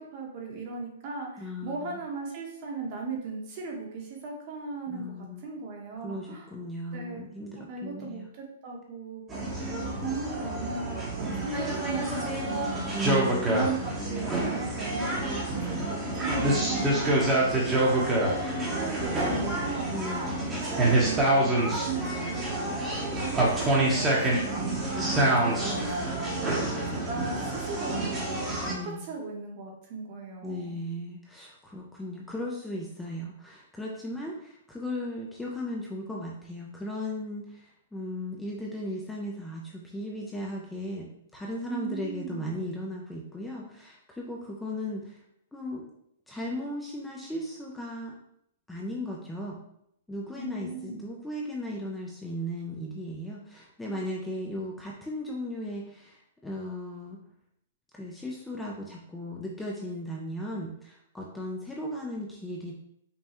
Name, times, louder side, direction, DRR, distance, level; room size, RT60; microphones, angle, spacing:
voice 1, 0.0-5.0 5.4-6.5 6.9-7.2 7.7-13.0 13.5-20.0 20.4-21.2 21.6-24.7 25.1-30.8 41.7-42.5 50.4-51.1 53.9-54.0, right 4 dB, 40° right, 0 dB, 1.0 m, -37 dB
voice 2, 1.4-2.0 4.9-5.5 6.0-8.3 12.9-13.6 19.9-20.5 24.9-26.1 28.7-29.0 30.4-45.2 45.5-45.9 46.3-48.2 48.7-49.6 50.1-57.2 57.9-62.7, left 1 dB, 5° left, -3 dB, 0.5 m, -36 dB
sound 1, 9.3-28.7, right 1 dB, 15° right, 0.9 m, -27 dB
5.4 x 2.2 x 2.9 m, 0.73 s
hypercardioid pair, 150°, 0 cm